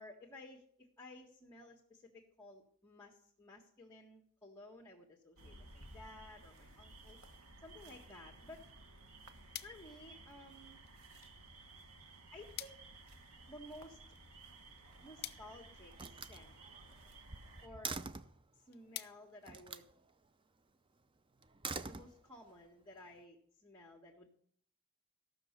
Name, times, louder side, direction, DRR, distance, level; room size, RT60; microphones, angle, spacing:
voice 1, 0.0-7.2 7.6-8.7 9.6-10.8 12.3-12.8 13.5-14.0 15.0-16.5 17.6-18.0 18.5-19.9 21.8-24.3, left 1 dB, 15° left, -3 dB, 1.8 m, -55 dB
sound 1, 5.3-17.7, right 2 dB, 85° right, 1.7 m, -56 dB
sound 2, 9.5-20.3, left 13 dB, 50° left, 0.7 m, -54 dB
Slam, 14.9-15.5 15.9-18.4 19.5-19.9 21.4-22.6, right 4 dB, 25° right, 0.5 m, -45 dB
15.0 x 6.4 x 8.1 m, 0.64 s
head